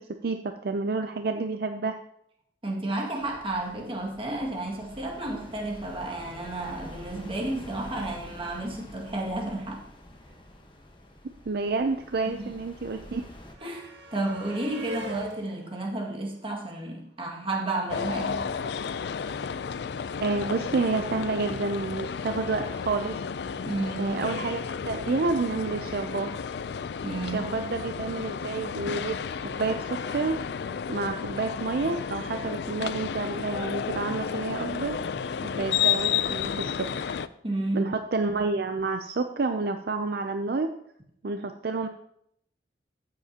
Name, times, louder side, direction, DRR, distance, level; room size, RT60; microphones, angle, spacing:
voice 1, 0.2-2.0 11.5-13.2 20.2-23.1 24.0-26.3 27.3-29.2 29.4-30.4 30.9-35.0 35.4-37.1 37.7-40.7 41.2-41.9, right 3 dB, 60° right, 6 dB, 0.5 m, -29 dB
voice 2, 2.6-9.8 12.3-12.5 13.6-18.5 23.6-24.1 27.0-27.5 37.4-37.9, right 2 dB, 30° right, -1 dB, 2.0 m, -32 dB
sound 1, 3.2-13.6, left 1 dB, 30° left, 1.2 m, -47 dB
sound 2, 10.8-10.9 11.0-17.2 18.4-18.5 18.8-18.9, right 2 dB, 85° right, 1.6 m, -46 dB
sound 3, 17.9-37.3, left 7 dB, 65° left, 0.4 m, -32 dB
15.0 x 7.5 x 2.9 m, 0.73 s
head